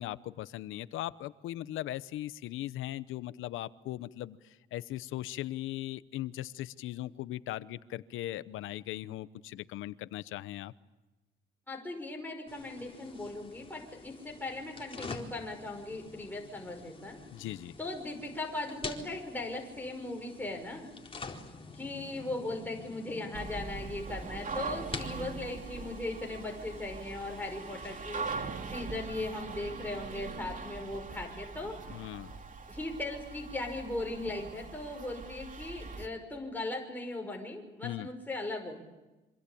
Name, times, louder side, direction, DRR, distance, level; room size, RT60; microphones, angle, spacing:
voice 1, 0.0-10.7 17.3-17.7 31.9-32.3 37.8-38.1, left 14 dB, 90° left, 15 dB, 0.9 m, -39 dB
voice 2, 11.7-17.2 17.8-20.9 21.7-32.0 32.7-38.8, left 2 dB, 10° left, 1 dB, 5.9 m, -38 dB
sound 1, 12.5-28.3, left 3 dB, 25° left, 4.2 m, -47 dB
sound 2, 23.3-36.1, right 4 dB, 40° right, 3.2 m, -42 dB
27.0 x 25.5 x 8.6 m, 1.1 s
cardioid pair, 90°, 20 cm